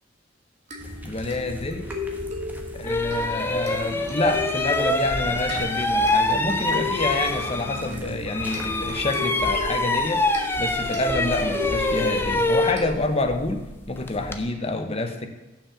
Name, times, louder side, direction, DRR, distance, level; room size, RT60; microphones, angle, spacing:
sound 1, 0.7-13.5, left 3 dB, 40° right, 1.7 m, -36 dB
sound 2, 0.8-9.1, equal, 10° right, 1.1 m, -40 dB
voice 1, 1.0-1.9 2.8-10.2 10.6-15.3, left 2 dB, 30° left, 6 dB, 0.9 m, -28 dB
sound 3, 2.2-2.3 2.8-8.0 8.3-14.4, left 2 dB, 10° left, 0.6 m, -25 dB
7.0 x 6.0 x 7.3 m, 1.1 s
head